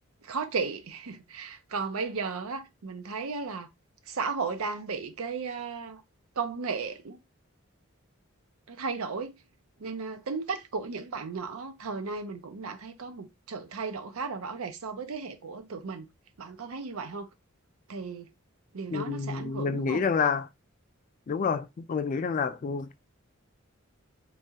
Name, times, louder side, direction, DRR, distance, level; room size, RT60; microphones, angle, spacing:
voice 1, 0.2-3.7 4.1-6.0 6.4-7.2 8.7-9.3 9.8-16.1 16.4-17.3 17.9-18.3 18.7-20.0, right 4 dB, 85° right, 0.6 m, -35 dB
voice 2, 18.9-20.5 21.3-23.0, left 5 dB, 40° left, 0.3 m, -28 dB
3.2 x 2.4 x 2.7 m
head